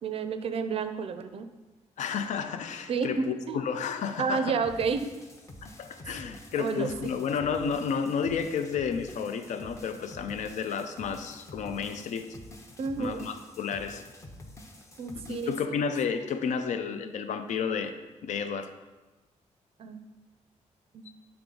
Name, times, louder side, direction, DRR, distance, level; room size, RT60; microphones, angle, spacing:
voice 1, 0.0-1.5 2.9-3.6 4.2-5.1 6.6-7.1 12.8-13.2 15.0-15.5 19.8-20.0 20.9-21.1, right 5 dB, 50° right, 9 dB, 0.4 m, -30 dB
voice 2, 2.0-4.6 5.8-12.4 13.0-14.0 15.1-18.0 18.2-18.7 21.1-21.2, left 6 dB, 75° left, 9 dB, 0.5 m, -31 dB
sound 1, 4.6-15.6, left 1 dB, 25° left, 0.6 m, -48 dB
8.4 x 3.4 x 3.8 m, 1.2 s
wide cardioid pair, 160°, 12 cm